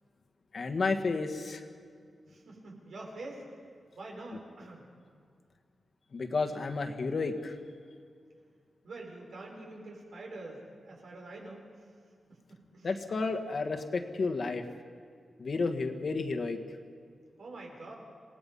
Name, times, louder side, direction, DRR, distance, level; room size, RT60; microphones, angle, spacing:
voice 1, 0.5-1.6 6.1-7.5 12.8-14.6 15.4-16.6, left 4 dB, 45° left, 5 dB, 1.5 m, -31 dB
voice 2, 2.3-3.5 4.0-4.9 8.8-11.6 12.5-12.9 17.4-18.0, right 2 dB, 75° right, -1 dB, 5.4 m, -45 dB
27.5 x 18.0 x 5.5 m, 2.3 s
wide cardioid pair, 165°, 0 cm